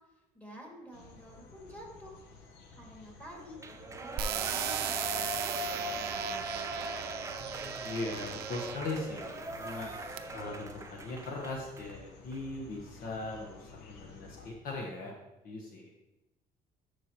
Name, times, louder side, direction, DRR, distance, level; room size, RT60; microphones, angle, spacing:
voice 1, 0.3-2.2 2.7-3.6 4.0-6.7, equal, 10° left, -2 dB, 2.3 m, -50 dB
sound 1, 0.9-14.5, left 4 dB, 80° left, 1.0 m, -53 dB
Shout / Cheering, 3.6-11.9 12.3-12.4, right 2 dB, 20° right, 0.5 m, -40 dB
sound 2, 4.2-8.9 9.6-10.2, right 10 dB, 70° right, 0.6 m, -37 dB
voice 2, 7.4-9.9 10.3-15.1 15.4-15.9, left 2 dB, 60° left, 0 dB, 1.2 m, -39 dB
10.5 x 4.9 x 3.0 m, 1.0 s
cardioid pair, 110°, 17 cm